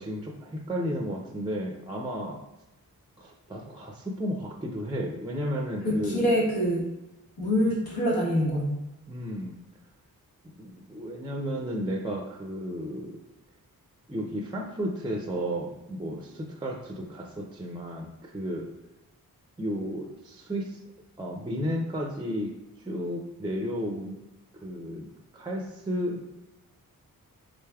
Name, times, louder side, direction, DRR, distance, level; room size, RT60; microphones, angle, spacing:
voice 1, 0.0-2.4 3.2-6.3 9.1-9.6 10.6-13.2 14.1-18.7 19.6-20.8 21.2-24.2 24.5-25.0 25.3-26.4, equal, 15° right, 1 dB, 0.4 m, -33 dB
voice 2, 5.8-6.8 7.4-8.7, equal, 85° left, -5 dB, 1.3 m, -25 dB
3.9 x 3.3 x 2.3 m, 0.98 s
cardioid pair, 70°, 36 cm